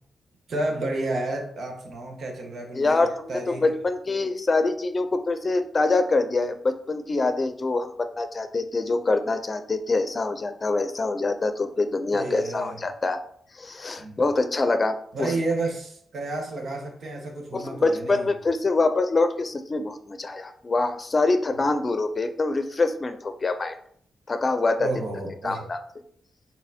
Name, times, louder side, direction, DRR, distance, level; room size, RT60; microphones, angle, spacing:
voice 1, 0.5-3.6 12.1-12.8 14.0-14.2 15.1-18.3 24.8-25.7, right 2 dB, 65° right, 1 dB, 1.1 m, -31 dB
voice 2, 2.8-13.2 13.6-15.3 17.5-23.7 24.3-24.9 25.4-25.8, left 3 dB, 40° left, 9 dB, 0.6 m, -25 dB
4.0 x 3.8 x 2.8 m, 0.62 s
hypercardioid pair, 40°, 0 cm